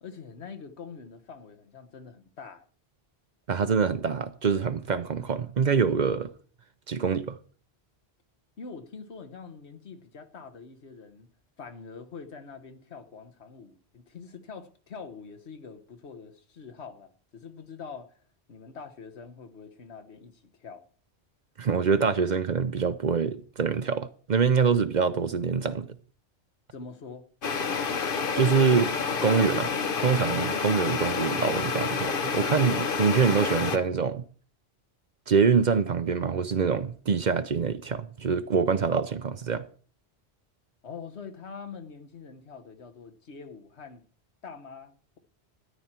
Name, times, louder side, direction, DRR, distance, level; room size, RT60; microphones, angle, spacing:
voice 1, 0.0-2.7 8.6-11.3 11.6-18.2 18.5-20.8 26.7-27.3 40.8-44.0 44.4-45.2, left 5 dB, 80° left, 1.5 m, -44 dB
voice 2, 3.5-6.3 6.9-7.4 21.6-25.9 28.3-28.9 29.2-29.7 30.0-34.2 35.3-39.6, right 6 dB, 50° right, 0.7 m, -25 dB
sound 1, 27.4-33.8, left 5 dB, 55° left, 1.1 m, -29 dB
13.0 x 10.5 x 4.4 m
omnidirectional pair, 1.1 m